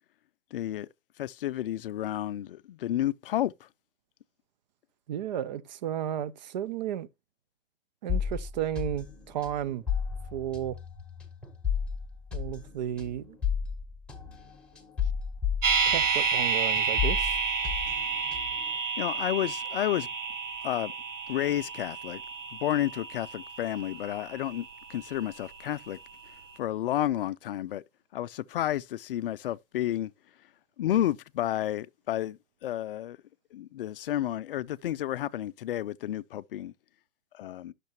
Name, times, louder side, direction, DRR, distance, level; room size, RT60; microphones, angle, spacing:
voice 1, 0.5-0.9 1.2-3.5 19.0-20.1 20.6-20.9 21.3-22.2 22.5-26.0 26.6-27.8 28.1-30.1 30.8-33.2 33.5-36.7 37.3-37.7, left 12 dB, 50° left, 0.4 m, -31 dB
voice 2, 5.1-7.1 8.0-9.8 10.3-10.8 12.3-13.4 15.9-17.4, right 10 dB, 35° right, 0.5 m, -33 dB
sound 1, 8.1-16.5 16.7-18.7, left 7 dB, 5° left, 1.3 m, -33 dB
sound 2, 15.6-25.7 26.0-26.1, right 5 dB, 80° right, 1.4 m, -30 dB
10.5 x 6.6 x 2.8 m
hypercardioid pair, 135°, 37 cm